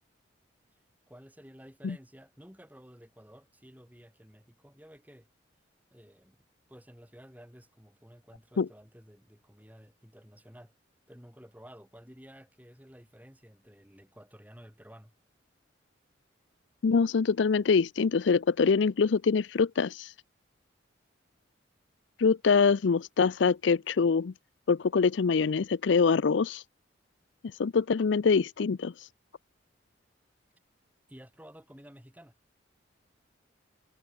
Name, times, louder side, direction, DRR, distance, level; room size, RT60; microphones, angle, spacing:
voice 1, 1.1-5.3 5.9-6.4 6.7-10.7 11.1-15.1 31.1-32.3, equal, 10° right, 5.9 m, -53 dB
voice 2, 16.8-20.1 22.2-24.3 24.7-26.6 27.6-28.9, left 5 dB, 70° left, 0.5 m, -24 dB
head